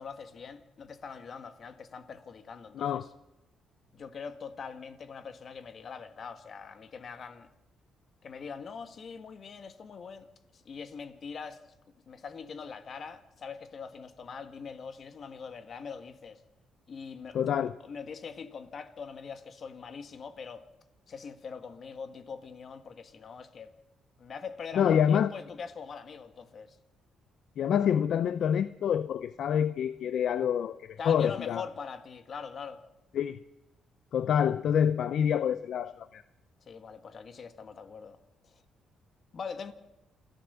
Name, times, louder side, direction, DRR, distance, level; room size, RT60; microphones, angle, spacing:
voice 1, 0.0-3.1 3.9-7.5 8.2-10.3 10.5-11.7 12.1-16.4 16.9-20.6 21.1-23.7 24.2-26.8 31.0-32.8 36.7-38.2 38.4-38.6 39.3-39.7, left 5 dB, 50° left, 1.8 m, -43 dB
voice 2, 17.3-17.7 24.8-25.3 27.6-31.6 33.1-33.4 34.1-36.2, left 8 dB, 65° left, 0.6 m, -27 dB
28.0 x 14.0 x 7.0 m
cardioid pair, 90°, 0 cm